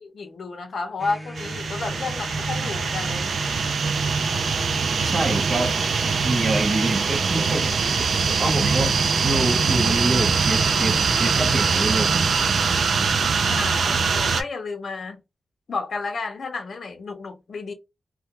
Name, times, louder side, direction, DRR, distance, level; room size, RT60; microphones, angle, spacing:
voice 1, 0.0-3.3 12.9-15.2 15.7-17.7, left 4 dB, 65° left, 0.6 m, -32 dB
sound 1, 1.0-12.2, equal, ahead, 0.4 m, -38 dB
sound 2, 1.4-14.4, right 5 dB, 85° right, 0.3 m, -22 dB
voice 2, 5.0-5.7 6.2-7.7 8.4-12.2, right 2 dB, 45° right, 0.6 m, -26 dB
2.3 x 2.2 x 2.8 m
wide cardioid pair, 140°, 0 cm